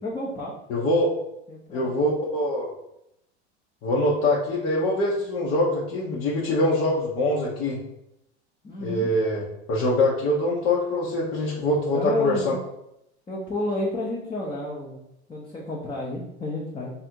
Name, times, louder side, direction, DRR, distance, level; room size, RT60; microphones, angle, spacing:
voice 1, 0.0-0.5 1.5-1.9 8.6-9.1 11.9-12.5 13.3-15.0 15.3-16.9, left 2 dB, 15° left, -4 dB, 0.8 m, -30 dB
voice 2, 0.7-1.1 1.7-2.7 3.8-7.8 8.8-9.4 9.7-12.5, left 1 dB, 45° left, -5 dB, 1.0 m, -24 dB
3.3 x 2.6 x 4.4 m, 0.82 s
hypercardioid pair, 90°, 34 cm